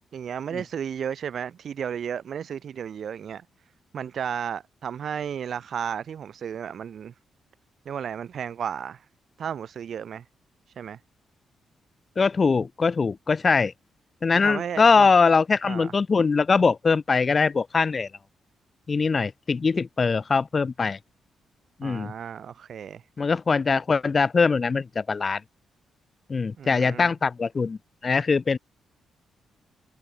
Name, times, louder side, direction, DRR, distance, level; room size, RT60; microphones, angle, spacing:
voice 1, 0.1-3.4 3.9-7.1 7.8-9.0 9.4-10.2 10.8-11.0 14.3-15.1 15.6-15.9 21.8-23.0 26.6-27.1, right 8 dB, 65° right, 1.2 m, -33 dB
voice 2, 12.2-13.7 14.2-18.1 18.9-21.0 21.8-22.1 23.2-25.4 26.3-28.6, left 4 dB, 40° left, 0.9 m, -22 dB
cardioid pair, 80°, 0 cm